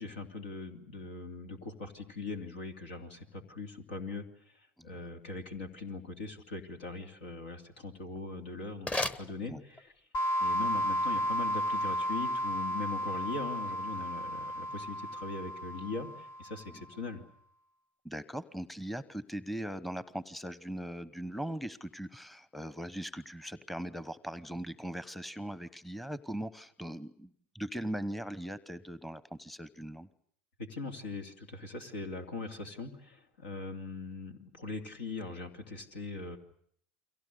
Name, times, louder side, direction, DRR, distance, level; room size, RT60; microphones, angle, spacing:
voice 1, 0.0-4.3 4.5-8.9 9.2-9.9 10.4-17.2 30.6-36.4, left 3 dB, 80° left, 5 dB, 2.9 m, -41 dB
sound 1, 7.9-10.1, left 1 dB, 20° left, 1.3 m, -38 dB
sound 2, 10.1-16.7, equal, 50° left, 1.5 m, -33 dB
voice 2, 18.0-30.1, right 1 dB, ahead, 16 dB, 1.0 m, -40 dB
29.5 x 23.0 x 6.8 m, 0.64 s
hypercardioid pair, 80°, 6 cm